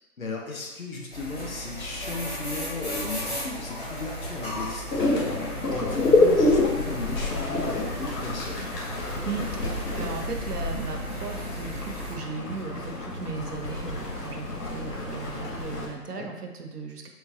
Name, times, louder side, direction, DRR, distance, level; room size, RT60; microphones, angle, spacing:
voice 1, 0.2-8.6 16.1-16.3, left 3 dB, 60° left, 0 dB, 0.8 m, -35 dB
sound 1, 1.1-12.1, equal, 35° left, 1.2 m, -36 dB
sound 2, 4.9-15.9, left 2 dB, 85° left, 1.0 m, -27 dB
voice 2, 9.2-17.1, right 4 dB, 80° right, 4 dB, 0.6 m, -37 dB
3.8 x 2.3 x 2.6 m, 1.1 s
figure-of-eight pair, 155°, 46 cm